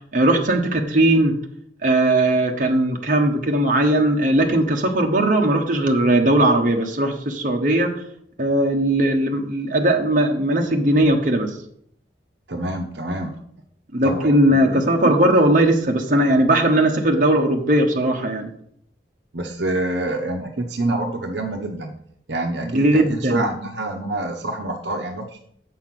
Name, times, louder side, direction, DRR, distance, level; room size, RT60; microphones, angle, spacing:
voice 1, 0.1-1.3 1.8-7.9 8.4-11.5 13.9-18.5 22.6-23.4, right 1 dB, 50° right, 2 dB, 1.2 m, -18 dB
voice 2, 12.5-13.3 14.0-15.4 19.3-21.9 22.3-25.4, right 2 dB, 80° right, 3 dB, 0.9 m, -27 dB
7.8 x 5.7 x 6.0 m, 0.67 s
head